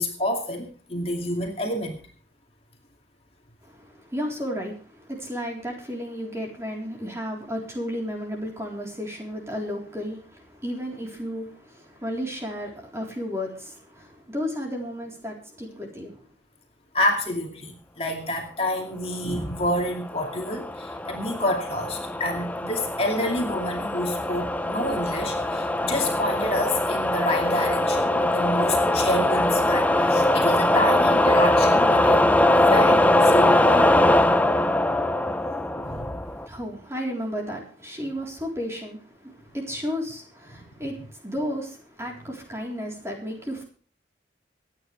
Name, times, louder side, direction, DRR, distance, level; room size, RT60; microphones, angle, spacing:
voice 1, 0.0-2.0 16.9-32.3 32.7-34.0 35.7-36.2 40.6-40.7, left 1 dB, 35° left, 1 dB, 2.4 m, -28 dB
voice 2, 3.6-16.2 36.3-43.6, equal, 15° right, 0 dB, 3.8 m, -33 dB
sound 1, 20.0-36.5, left 1 dB, 10° left, 0.6 m, -21 dB
26.0 x 9.5 x 3.4 m, 0.43 s
head